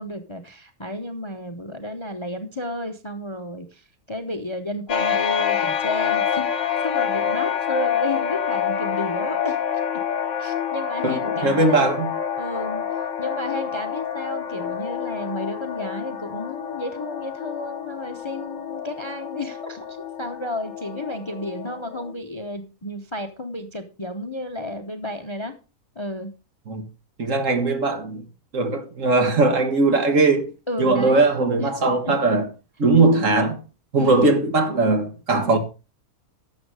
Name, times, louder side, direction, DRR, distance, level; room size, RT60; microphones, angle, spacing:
voice 1, 0.0-6.5 6.8-9.8 10.4-11.9 12.4-25.6 26.0-26.3 30.7-31.3 31.6-32.4 34.0-34.3, left 1 dB, 25° left, 0.7 m, -32 dB
sound 1, 4.9-22.1, left 8 dB, 60° left, 1.3 m, -27 dB
voice 2, 11.0-12.1 26.7-26.8 27.2-28.2 28.5-30.5 30.8-32.5 32.8-33.6 33.9-35.6, right 3 dB, 60° right, 1.9 m, -19 dB
12.0 x 7.2 x 4.8 m
omnidirectional pair, 1.6 m